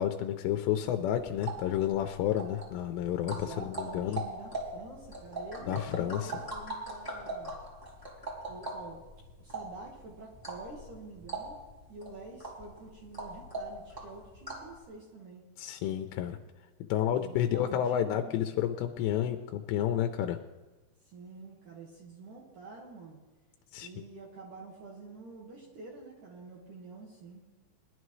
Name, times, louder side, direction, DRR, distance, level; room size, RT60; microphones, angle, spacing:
voice 1, 0.0-4.2 5.7-6.3 15.6-16.4 16.9-20.4 23.7-23.9, left 10 dB, 85° left, 7 dB, 2.5 m, -30 dB
sound 1, 1.2-14.8, right 2 dB, 10° right, 1.3 m, -41 dB
voice 2, 3.2-7.5 8.5-9.0 9.4-11.6 11.9-15.4 17.2-18.3 21.1-23.2 23.8-27.4, right 3 dB, 60° right, -2 dB, 2.3 m, -48 dB
21.5 x 11.0 x 3.2 m, 1.2 s
omnidirectional pair, 5.6 m